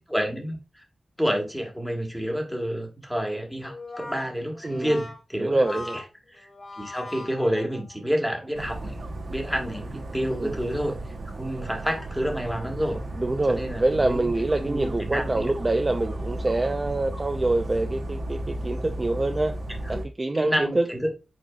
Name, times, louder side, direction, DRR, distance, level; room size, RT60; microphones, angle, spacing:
voice 1, 0.1-0.8 1.2-5.8 6.3-6.5 6.8-9.0 9.3-11.0 11.3-13.0 13.5-14.3 14.6-15.5 19.9-20.0 20.3-21.1, equal, ahead, 1.3 m, -29 dB
Brass instrument, 3.6-8.1, left 2 dB, 45° left, 1.6 m, -40 dB
voice 2, 4.6-4.9 5.4-6.0 10.3-10.7 13.2-19.6 19.9-20.9, right 2 dB, 30° right, 0.4 m, -25 dB
Dog, 8.5-20.1, right 1 dB, 60° right, 1.2 m, -34 dB
4.8 x 4.0 x 2.3 m
wide cardioid pair, 90°, 0 cm